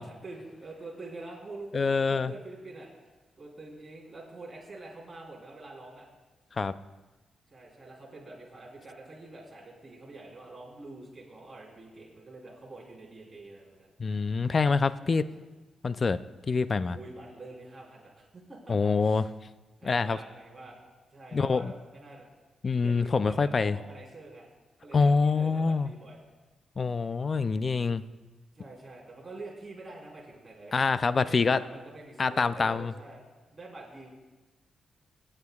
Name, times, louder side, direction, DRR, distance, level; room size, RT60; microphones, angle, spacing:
voice 1, 0.0-2.9 3.4-6.1 7.5-13.9 14.9-15.4 16.9-19.3 19.8-20.8 21.1-22.3 22.8-24.5 24.8-26.2 28.5-33.2 33.5-34.1, right 2 dB, 20° right, -5 dB, 3.5 m, -46 dB
voice 2, 1.7-2.3 6.6-6.7 14.0-15.3 15.8-16.2 16.5-17.0 18.7-19.2 19.8-20.2 21.3-21.7 22.6-23.8 24.9-25.9 26.8-28.0 30.7-31.6 32.2-32.9, left 4 dB, 35° left, 14 dB, 0.4 m, -25 dB
25.5 x 8.8 x 2.3 m, 1.2 s
cardioid pair, 115°, 0 cm